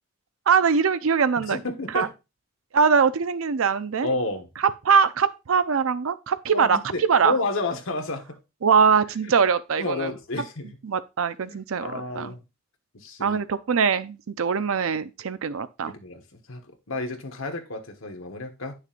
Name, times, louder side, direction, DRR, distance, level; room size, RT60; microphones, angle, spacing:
voice 1, 0.5-1.6 1.9-2.1 2.7-4.1 4.8-7.3 8.6-10.1 10.8-11.9 12.1-12.3 13.2-15.9, right 6 dB, 90° right, 0.6 m, -22 dB
voice 2, 1.4-2.1 4.0-4.5 6.5-8.4 9.2-9.3 9.8-10.7 11.4-12.4 12.9-13.4 15.9-18.7, left 2 dB, 85° left, 1.3 m, -31 dB
9.1 x 6.4 x 2.5 m
head